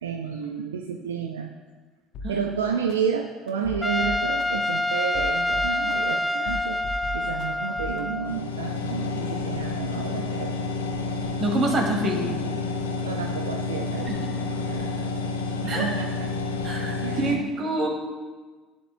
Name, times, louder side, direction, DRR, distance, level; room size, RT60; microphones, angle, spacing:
voice 1, 0.0-1.5 2.3-6.8 7.1-10.5 13.0-14.1 14.5-15.2 15.6-16.3 17.0-17.5, right 6 dB, 80° right, 4 dB, 0.5 m, -31 dB
sound 1, 2.1-2.3 2.9-3.0 3.5-4.5 5.0-6.1 6.5-7.5 7.8-8.0, left 1 dB, 55° left, 0.9 m, -36 dB
Trumpet, 3.8-8.4, left 1 dB, 10° left, 0.3 m, -26 dB
sound 2, 8.2-17.4, left 3 dB, 85° left, 0.8 m, -29 dB
voice 2, 11.4-12.3 14.1-14.3 15.7-15.9 16.6-17.9, right 1 dB, 45° right, 2 dB, 2.1 m, -26 dB
15.0 x 7.2 x 2.2 m, 1.4 s
figure-of-eight pair, 60°, 0 cm